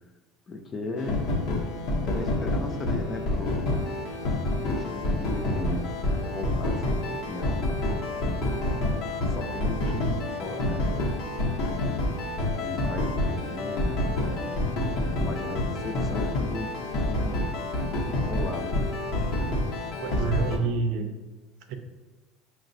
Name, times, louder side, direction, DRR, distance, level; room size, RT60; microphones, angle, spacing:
voice 1, 0.5-1.2 2.0-3.9 4.6-5.9 6.3-7.7 9.3-11.2 12.6-14.6 15.2-17.5 18.3-18.8, left 3 dB, 30° left, 3 dB, 0.5 m, -37 dB
sound 1, 1.0-20.6, left 1 dB, 70° left, 0.7 m, -28 dB
voice 2, 20.0-21.1 21.7-21.8, right 5 dB, 70° right, 5 dB, 0.5 m, -29 dB
5.9 x 2.1 x 2.6 m, 1.2 s
supercardioid pair, 110°, 0 cm